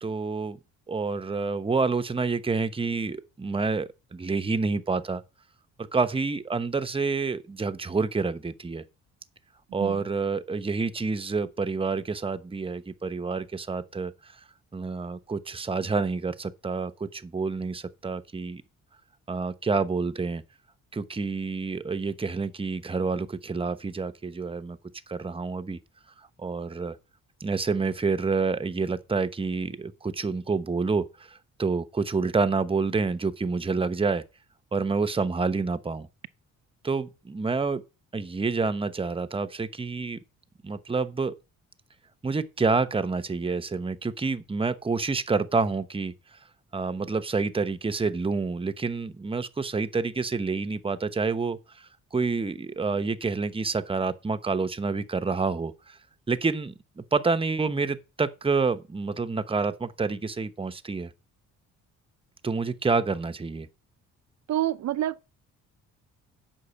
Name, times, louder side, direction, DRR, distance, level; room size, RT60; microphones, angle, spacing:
voice 1, 0.0-0.6 0.9-5.2 5.9-8.8 9.7-14.1 14.7-18.6 19.3-20.4 20.9-24.8 25.1-25.8 26.4-27.0 27.4-34.2 34.7-36.1 36.8-37.8 38.1-40.2 40.6-41.3 42.2-46.1 46.7-51.6 52.1-56.0 56.3-61.1 62.4-63.7, right 4 dB, 20° right, 0.9 m, -28 dB
voice 2, 64.5-65.3, right 13 dB, 65° right, 0.6 m, -27 dB
8.4 x 5.4 x 7.1 m
cardioid pair, 90°, 30 cm